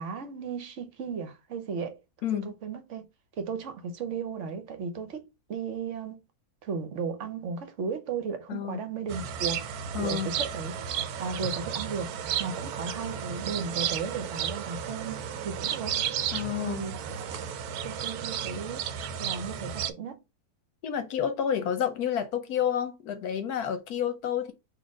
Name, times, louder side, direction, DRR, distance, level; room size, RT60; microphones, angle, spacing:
voice 1, 0.0-2.0 2.3-3.0 3.4-6.2 6.6-10.8 11.2-12.1 12.4-16.0 16.7-17.2 17.8-18.9 19.2-20.2, right 5 dB, 55° right, 1.0 m, -35 dB
voice 2, 2.2-2.5 8.5-8.8 9.9-10.3 16.3-16.9 20.8-24.5, left 9 dB, 75° left, 1.2 m, -29 dB
sound 1, 9.1-19.9, right 8 dB, 80° right, 1.1 m, -33 dB
4.2 x 2.6 x 4.7 m
omnidirectional pair, 1.6 m